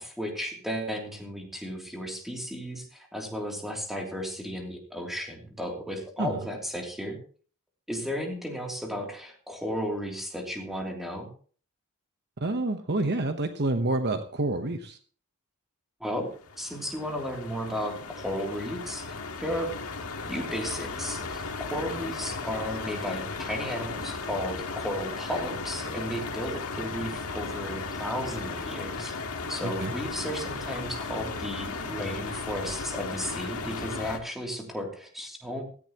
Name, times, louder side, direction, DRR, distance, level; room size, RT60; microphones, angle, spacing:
voice 1, 0.0-7.2 7.9-11.3 16.0-16.3 16.6-19.0 19.4-19.7 20.3-21.4 21.7-29.1 29.5-35.6, equal, ahead, 0 dB, 3.0 m, -34 dB
voice 2, 12.4-15.0 29.6-29.9, right 2 dB, 50° right, 7 dB, 1.0 m, -28 dB
sound 1, 16.2-34.2, left 4 dB, 80° left, 1.7 m, -36 dB
16.5 x 14.5 x 3.0 m, 0.43 s
head